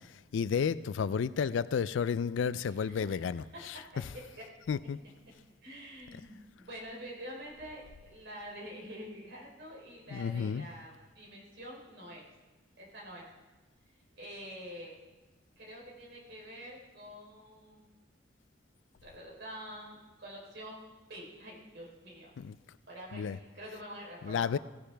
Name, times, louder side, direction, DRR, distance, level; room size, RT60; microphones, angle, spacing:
voice 1, 0.3-3.8 4.7-5.0 10.1-10.7 22.4-22.6 23.1-23.4 24.2-24.6, left 6 dB, 70° left, 17 dB, 0.4 m, -31 dB
voice 2, 2.7-3.8 4.1-4.5 5.6-12.3 12.8-13.3 14.1-14.9 15.6-17.9 19.0-20.8 21.1-22.3 22.9-24.6, equal, 60° right, -3 dB, 3.6 m, -47 dB
16.5 x 10.0 x 3.4 m, 1.2 s
head